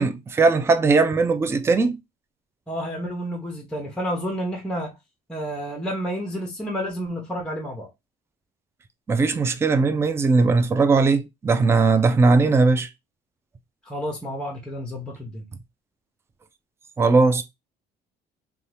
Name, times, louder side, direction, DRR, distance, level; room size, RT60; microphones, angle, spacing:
voice 1, 0.0-2.0 9.1-12.9 17.0-17.4, right 4 dB, 15° right, 0.3 m, -19 dB
voice 2, 2.7-4.9 5.3-7.9 13.9-15.5, equal, 5° left, 0.7 m, -30 dB
2.7 x 2.2 x 3.2 m
cardioid pair, 110°, 17 cm